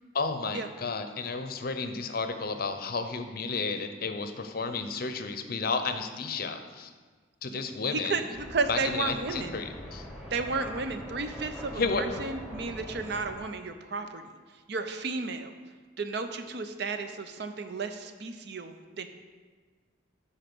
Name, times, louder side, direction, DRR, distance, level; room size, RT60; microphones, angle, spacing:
voice 1, 0.1-6.9 7.4-8.2 8.7-10.1 11.8-12.0, left 4 dB, 50° left, 8 dB, 0.6 m, -32 dB
voice 2, 7.9-9.5 10.3-14.2 14.7-15.5 16.0-19.1, right 4 dB, 55° right, 8 dB, 0.6 m, -33 dB
sound 1, 8.3-13.3, equal, 5° right, 1.2 m, -42 dB
10.5 x 4.2 x 6.0 m, 1.5 s
head